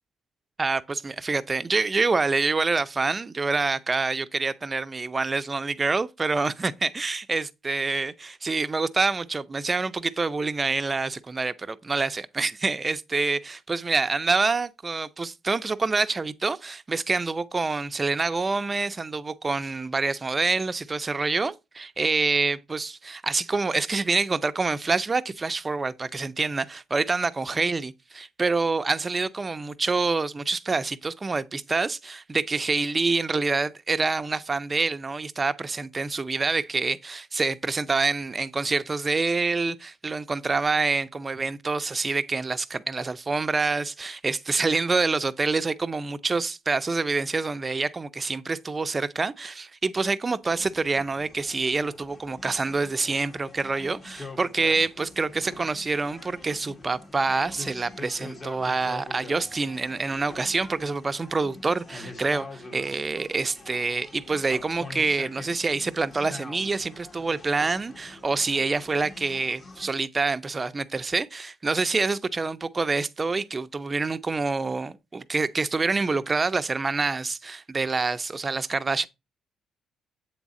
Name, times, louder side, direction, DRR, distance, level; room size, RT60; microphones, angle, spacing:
voice 1, 0.6-79.1, right 3 dB, 25° right, 0.5 m, -26 dB
sound 1, 50.4-69.9, left 3 dB, 35° left, 1.8 m, -45 dB
7.9 x 3.6 x 4.1 m
cardioid pair, 90°, 0 cm